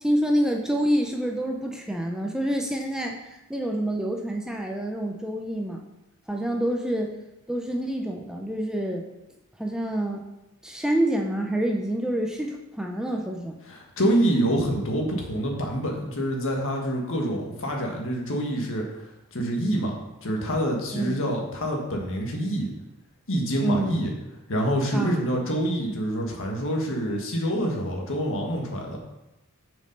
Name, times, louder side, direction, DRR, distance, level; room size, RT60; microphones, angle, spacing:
voice 1, 0.0-5.8 6.3-7.1 7.5-9.0 9.6-10.2 10.6-13.6 20.9-21.2 23.6-24.0 24.9-25.2, right 1 dB, 5° right, 1 dB, 0.6 m, -27 dB
voice 2, 13.7-22.7 23.3-24.1 24.5-29.0, right 1 dB, 60° left, 1 dB, 1.6 m, -26 dB
6.9 x 5.3 x 5.3 m, 0.95 s
head